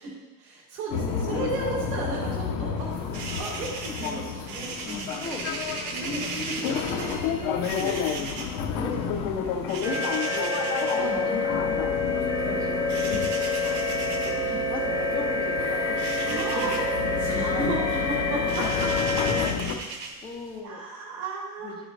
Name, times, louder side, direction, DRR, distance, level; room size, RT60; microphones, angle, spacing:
voice 1, 0.4-2.9 3.4-5.2 5.9-7.7 8.7-8.9 9.2-9.4 10.9-11.6 13.0-13.2 14.4-14.6 16.2-16.8 17.2-19.4 20.6-21.7, right 2 dB, 75° right, -5 dB, 3.4 m, -34 dB
sound 1, 0.9-19.8, left 7 dB, 45° left, 0.8 m, -31 dB
sound 2, 2.8-20.6, right 4 dB, 45° right, 1.3 m, -39 dB
voice 2, 5.1-6.5 7.0-7.5 7.8-8.5 8.8-9.1 10.0-10.2 10.6-11.0 12.1-13.0 13.9-14.4 14.7-16.8 19.6-20.8 21.6-21.9, left 4 dB, 10° left, 2 dB, 0.6 m, -40 dB
sound 3, 9.8-19.5, left 2 dB, 5° right, 0.9 m, -28 dB
10.5 x 9.1 x 3.3 m, 1.2 s
cardioid pair, 175°, 48 cm